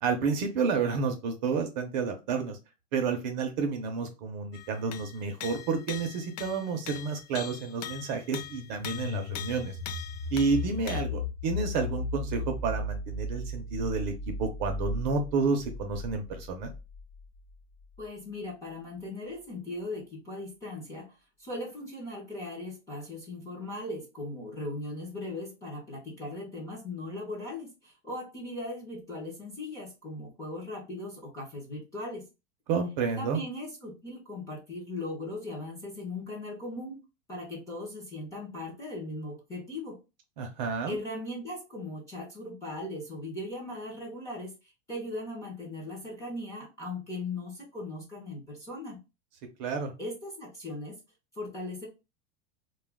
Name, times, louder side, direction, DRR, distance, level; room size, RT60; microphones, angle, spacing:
voice 1, 0.0-2.6 2.9-9.8 10.3-14.1 14.4-16.7 32.7-33.4 40.4-41.0 49.6-49.9, right 5 dB, 40° right, 0.5 m, -30 dB
sound 1, 4.5-11.0, left 11 dB, 80° left, 0.5 m, -42 dB
sound 2, 8.5-17.2, left 2 dB, 45° left, 0.8 m, -36 dB
voice 2, 18.0-21.1 21.4-32.3 33.2-40.0 40.9-44.5 44.9-49.0 50.0-50.9 51.4-51.9, left 2 dB, 10° left, 0.5 m, -38 dB
2.2 x 2.2 x 3.3 m
supercardioid pair, 165°, 36 cm